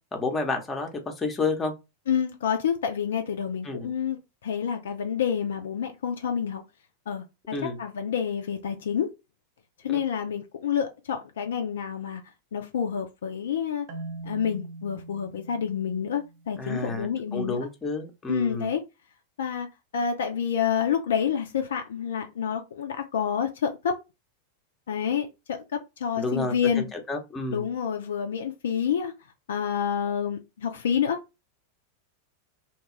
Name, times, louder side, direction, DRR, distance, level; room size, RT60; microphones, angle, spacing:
voice 1, 0.1-1.7 3.6-3.9 7.5-7.8 9.9-10.0 16.6-18.7 26.2-27.6, left 3 dB, 15° left, 0.8 m, -30 dB
voice 2, 2.1-6.6 7.1-9.1 9.8-12.2 12.5-13.9 14.2-17.6 18.3-18.8 19.4-19.7 19.9-24.0 24.9-26.9 27.5-29.1 29.5-31.2, left 7 dB, 60° left, 0.4 m, -28 dB
Marimba xylophone, 13.9-16.9, right 2 dB, 45° right, 0.7 m, -42 dB
2.8 x 2.3 x 3.0 m
figure-of-eight pair, 90°, 0 cm